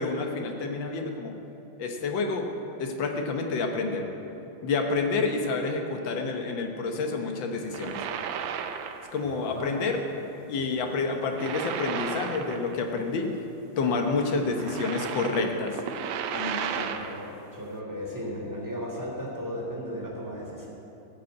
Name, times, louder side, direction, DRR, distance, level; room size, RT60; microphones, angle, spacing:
voice 1, 0.0-1.4 1.8-2.5 2.8-4.1 4.6-8.1 9.1-10.0 10.5-13.3 13.8-15.8 16.3-16.9, left 4 dB, 80° left, 3 dB, 1.8 m, -29 dB
sound 1, 7.6-9.2 9.5-9.8 11.1-13.0 13.2-13.3 14.2-17.3, right 8 dB, 85° right, 1.4 m, -34 dB
voice 2, 9.2-9.7 10.6-10.7 16.7-20.7, equal, 10° right, -4 dB, 2.3 m, -36 dB
14.5 x 5.3 x 8.2 m, 3.0 s
omnidirectional pair, 2.0 m